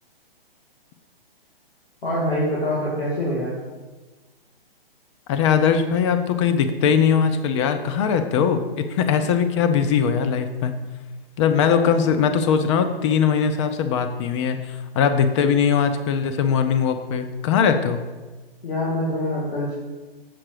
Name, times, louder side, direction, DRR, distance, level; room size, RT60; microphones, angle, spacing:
voice 1, 2.0-3.6 11.7-11.9 18.6-19.7, left 1 dB, 80° left, -7 dB, 2.7 m, -25 dB
voice 2, 5.3-10.7 11.4-18.0, left 7 dB, 30° left, 8 dB, 0.6 m, -20 dB
7.7 x 5.8 x 4.9 m, 1.3 s
hypercardioid pair, 140°, 30 cm